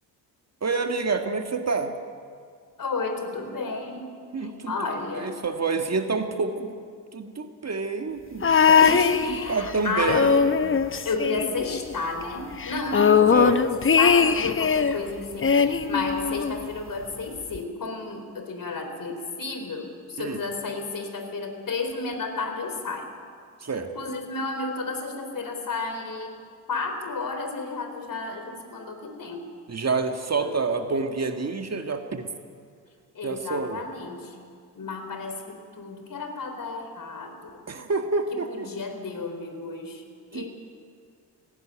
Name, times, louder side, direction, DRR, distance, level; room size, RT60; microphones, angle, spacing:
voice 1, 0.6-1.9 4.3-4.8 5.1-6.8 7.1-8.8 9.3-10.6 13.3-13.6 20.2-20.4 23.6-23.9 29.7-32.3 33.2-33.8 37.7-38.7 40.3-40.5, right 4 dB, 30° right, 6 dB, 1.9 m, -28 dB
voice 2, 2.8-4.1 4.4-5.4 8.7-10.3 11.0-23.1 24.0-26.4 26.7-29.5 30.4-30.5 33.1-34.4 34.7-37.6 38.3-40.0 40.3-40.5, left 3 dB, 40° left, 5 dB, 4.2 m, -32 dB
sound 1, 8.4-9.7 10.0-11.9 12.2-12.3 12.6-15.0 15.4-16.7 17.5-17.6, left 6 dB, 25° left, 1.0 m, -20 dB
17.5 x 16.5 x 9.3 m, 2.1 s
figure-of-eight pair, 45°, 49 cm